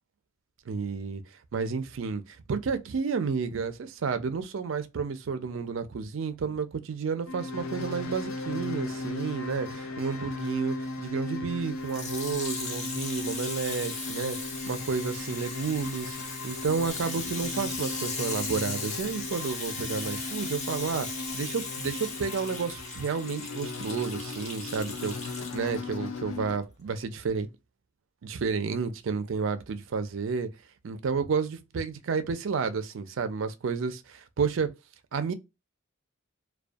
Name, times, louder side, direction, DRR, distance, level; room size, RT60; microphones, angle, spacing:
voice 1, 0.7-1.2 1.5-14.4 14.7-21.1 21.3-27.5 28.2-30.5 30.8-34.7 35.1-35.3, right 5 dB, 70° right, 0.4 m, -31 dB
sound 1, 7.3-26.6, left 2 dB, 85° left, 0.5 m, -37 dB
Water tap faucet / Sink (filling or washing), 11.8-25.8 26.5-26.6, left 4 dB, 35° left, 0.6 m, -37 dB
2.3 x 2.2 x 2.5 m
head